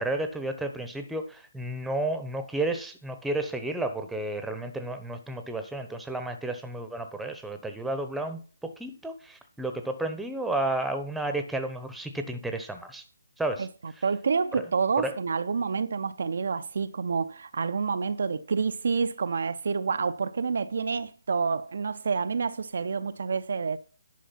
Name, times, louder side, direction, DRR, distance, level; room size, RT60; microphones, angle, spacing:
voice 1, 0.0-13.0 13.4-13.7 14.6-14.7 15.0-15.2, right 2 dB, 5° right, 0.9 m, -32 dB
voice 2, 13.6-23.8, right 5 dB, 60° right, 0.6 m, -28 dB
10.5 x 5.0 x 5.8 m
figure-of-eight pair, 145°, 0 cm